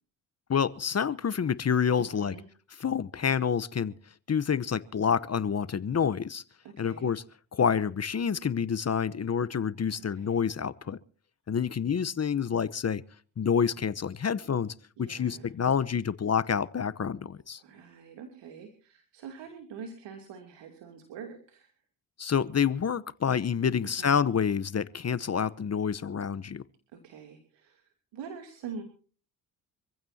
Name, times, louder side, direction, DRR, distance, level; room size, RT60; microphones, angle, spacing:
voice 1, 0.5-2.3 2.8-3.9 4.3-6.4 6.8-7.2 7.5-11.0 11.5-13.0 13.4-17.6 22.2-26.6, left 7 dB, 35° left, 1.0 m, -28 dB
voice 2, 2.0-2.4 6.6-7.1 9.9-10.5 15.0-15.5 17.6-21.7 23.8-24.2 26.9-28.8, right 6 dB, 70° right, 2.9 m, -45 dB
26.5 x 15.5 x 2.8 m
hypercardioid pair, 50°, 44 cm